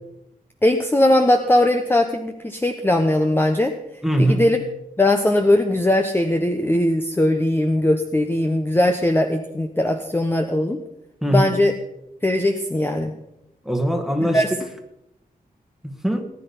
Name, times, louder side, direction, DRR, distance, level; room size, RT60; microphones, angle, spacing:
voice 1, 0.6-3.7 4.2-4.6 5.0-10.8 11.3-11.7 12.2-13.1 14.2-14.5, left 1 dB, 15° left, 6 dB, 1.0 m, -19 dB
voice 2, 4.0-4.5 11.2-11.5 13.7-14.4 15.8-16.2, equal, ahead, 4 dB, 1.9 m, -21 dB
19.0 x 10.0 x 5.5 m, 0.85 s
wide cardioid pair, 120°, 15 cm